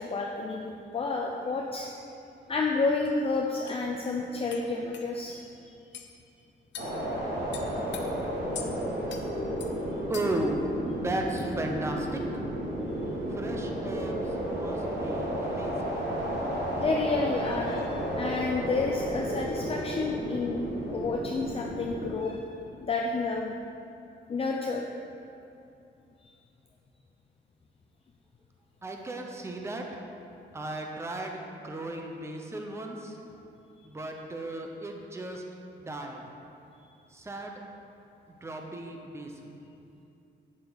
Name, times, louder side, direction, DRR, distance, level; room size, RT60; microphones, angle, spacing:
voice 1, 0.0-1.9 2.5-5.4 16.8-22.4 22.8-23.6 24.3-24.8 26.2-26.3 30.7-30.8, left 3 dB, 30° left, 0 dB, 0.6 m, -30 dB
sound 1, 3.1-3.2 3.7-3.8 4.5-4.6 4.9-5.1 5.9-6.1 6.7-6.9 7.5-8.0 8.5-8.7 9.1-9.2 9.6-9.7 10.1-10.4, left 8 dB, 80° left, 0.9 m, -41 dB
sound 2, 6.8-22.1, right 1 dB, 85° right, 2.8 m, -32 dB
voice 2, 9.6-10.6 10.9-12.4 13.3-15.8 28.8-30.0 30.5-33.2 33.8-35.4 35.7-36.2 37.1-37.6 38.4-39.5, right 1 dB, 15° right, 2 dB, 0.8 m, -36 dB
11.5 x 8.7 x 4.1 m, 2.7 s
wide cardioid pair, 165°, 18 cm